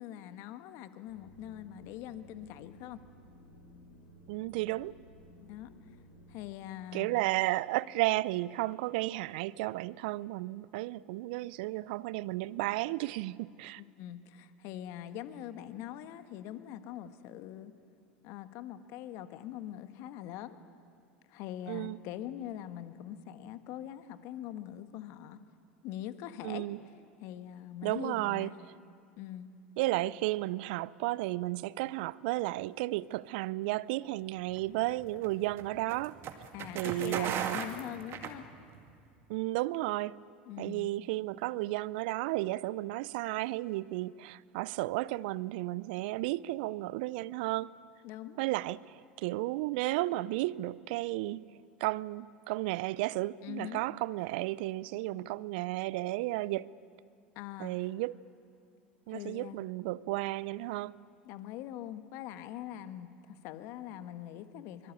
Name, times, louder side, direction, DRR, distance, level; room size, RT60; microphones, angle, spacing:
voice 1, 0.0-3.0 5.4-5.7 6.3-7.2 13.8-17.7 18.2-20.6 21.3-25.4 25.8-26.6 27.2-28.5 29.2-29.5 36.5-38.5 40.5-40.9 48.0-48.4 53.4-53.9 55.1-55.4 57.3-57.7 59.1-59.6 61.2-64.9, left 12 dB, 55° left, 1.4 m, -43 dB
sound 1, 1.1-6.5, equal, 80° left, 5.1 m, -56 dB
voice 2, 4.3-5.0 6.9-13.8 21.7-22.0 26.4-26.8 27.8-28.5 29.8-36.2 36.7-37.6 39.3-40.2 40.6-47.7 48.4-51.4 51.8-56.7 57.6-58.2 59.1-60.9, right 18 dB, 65° right, 0.5 m, -33 dB
sound 2, 34.5-38.9, right 8 dB, 45° right, 2.1 m, -38 dB
24.5 x 23.0 x 8.6 m
hypercardioid pair, 80°, 6 cm